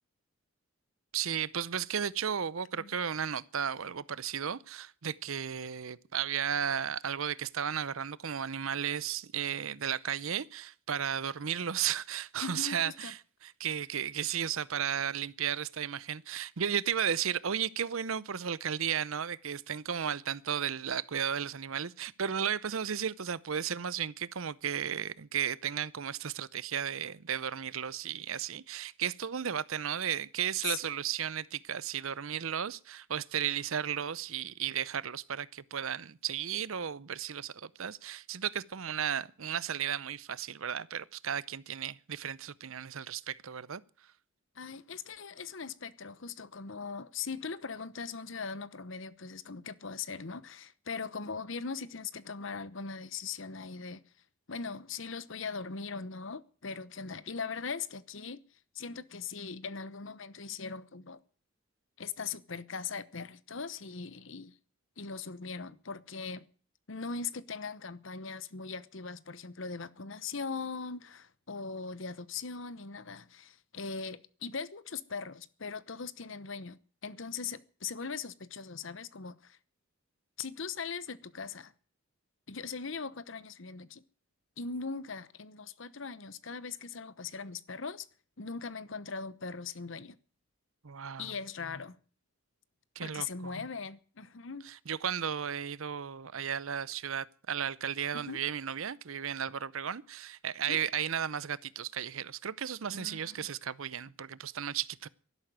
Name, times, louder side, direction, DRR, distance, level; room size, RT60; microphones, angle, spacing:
voice 1, 1.1-43.8 90.8-91.3 93.0-93.6 94.6-105.1, right 8 dB, 70° right, 0.7 m, -34 dB
voice 2, 12.4-13.1 30.6-30.8 44.6-54.0 54.5-58.4 58.7-61.2 62.0-64.6 65.0-66.5 66.9-79.6 80.4-81.7 82.5-84.0 84.6-88.1 88.4-90.2 91.2-92.0 93.0-94.7 98.1-98.4 100.7-100.8 102.9-103.5, left 5 dB, 60° left, 0.9 m, -40 dB
12.5 x 11.5 x 9.3 m
head